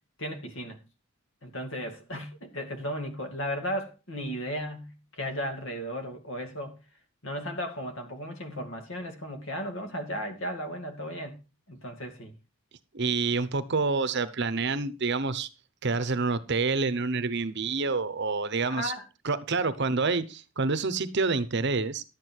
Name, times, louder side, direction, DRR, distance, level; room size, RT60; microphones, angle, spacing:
voice 1, 0.2-0.8 1.4-6.8 7.2-11.4 11.7-12.3 18.7-19.0, equal, 60° left, 2.3 m, -35 dB
voice 2, 12.9-15.5 15.8-18.9 19.2-22.0, right 4 dB, 50° right, 0.8 m, -27 dB
11.5 x 8.3 x 4.5 m
head